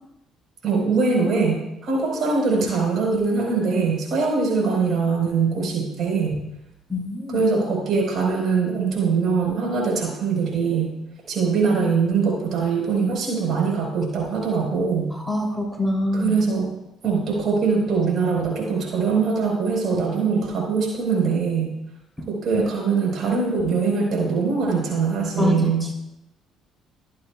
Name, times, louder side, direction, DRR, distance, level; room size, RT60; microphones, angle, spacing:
voice 1, 0.6-6.4 7.3-10.9 11.3-15.1 16.1-16.7 17.0-21.7 22.3-25.9, right 4 dB, 60° right, 0 dB, 4.6 m, -22 dB
voice 2, 6.9-7.4 15.1-16.3 25.4-25.9, left 1 dB, ahead, -1 dB, 3.3 m, -25 dB
22.5 x 8.9 x 2.4 m, 0.86 s
hypercardioid pair, 55°, 0 cm